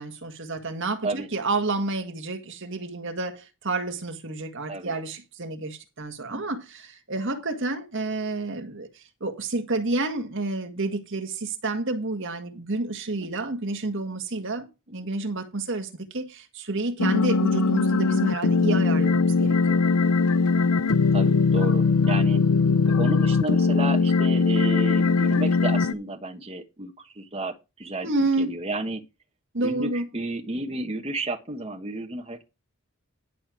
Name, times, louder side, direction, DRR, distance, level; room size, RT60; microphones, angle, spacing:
voice 1, 0.0-8.9 9.2-19.8 28.0-28.6 29.5-30.1, right 2 dB, 55° right, 1.8 m, -29 dB
sound 1, 17.0-25.9, left 4 dB, 85° left, 0.6 m, -21 dB
voice 2, 21.1-22.4 23.0-29.0 29.6-32.4, right 2 dB, 25° right, 1.3 m, -32 dB
11.5 x 5.1 x 6.1 m
head